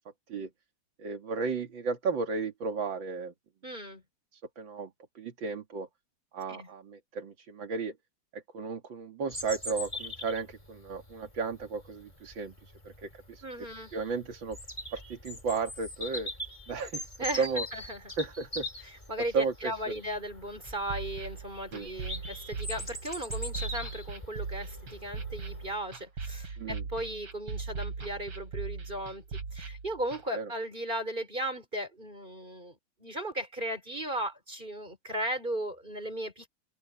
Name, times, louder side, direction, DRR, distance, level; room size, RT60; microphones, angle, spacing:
voice 1, 1.0-3.3 4.3-5.9 6.3-8.0 8.3-13.4 13.9-14.6 14.9-16.3 16.7-17.1 17.3-17.7 18.2-19.0 19.3-19.7 21.7-21.9 26.6-26.8 30.3-30.5, right 4 dB, 65° right, 2.9 m, -34 dB
voice 2, 3.6-4.0 6.5-6.7 13.4-13.9 17.2-18.1 18.8-36.5, right 1 dB, 20° right, 5.0 m, -36 dB
Bird vocalization bird call bird song, 9.3-25.7, left 1 dB, 15° left, 5.8 m, -42 dB
sound 1, 20.6-30.2, right 4 dB, 85° right, 4.1 m, -39 dB
open air
omnidirectional pair, 2.3 m